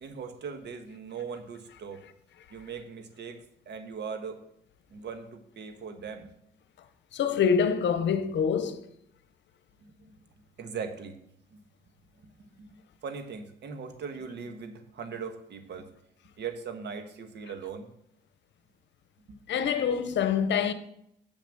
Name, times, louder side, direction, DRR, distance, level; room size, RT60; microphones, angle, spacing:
voice 1, 0.0-2.0 2.5-4.4 4.9-6.3 9.8-10.1 10.6-11.2 11.5-11.6 12.2-15.9 16.4-17.9 19.3-19.4, right 6 dB, 60° right, 1.4 m, -40 dB
voice 2, 7.1-8.8 19.5-20.7, left 7 dB, 65° left, 0.9 m, -25 dB
7.0 x 6.1 x 7.2 m
cardioid pair, 90°, 20 cm